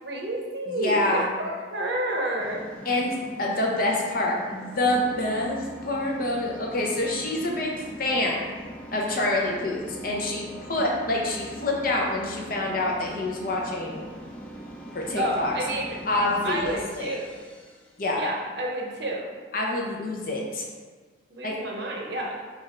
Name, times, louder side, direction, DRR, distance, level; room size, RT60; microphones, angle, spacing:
voice 1, 0.0-2.7 15.2-16.0 16.4-17.3 18.1-19.3 21.3-22.4, right 1 dB, 60° right, -1 dB, 0.8 m, -30 dB
voice 2, 0.7-1.2 2.9-3.1 3.4-7.7 8.0-8.4 8.9-14.0 14.9-15.5 16.1-17.2 18.0-18.2 19.5-20.6 21.4-21.5, left 2 dB, 50° left, -2 dB, 0.7 m, -26 dB
sound 1, 2.4-18.1, right 1 dB, 5° left, 0.4 m, -42 dB
5.0 x 2.5 x 4.3 m, 1.5 s
head